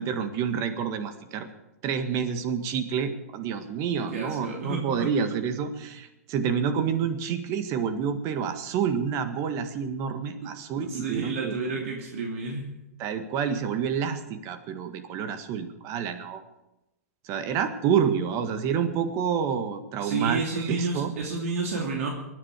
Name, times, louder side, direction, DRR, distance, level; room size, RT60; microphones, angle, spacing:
voice 1, 0.0-1.5 1.8-11.5 13.0-16.4 17.2-21.1, right 7 dB, 40° right, 8 dB, 1.7 m, -28 dB
voice 2, 3.9-5.1 10.4-10.5 10.9-12.7 20.0-22.1, right 4 dB, 65° right, 0 dB, 2.7 m, -30 dB
23.5 x 9.9 x 4.9 m, 0.94 s
hypercardioid pair, 105°, 8 cm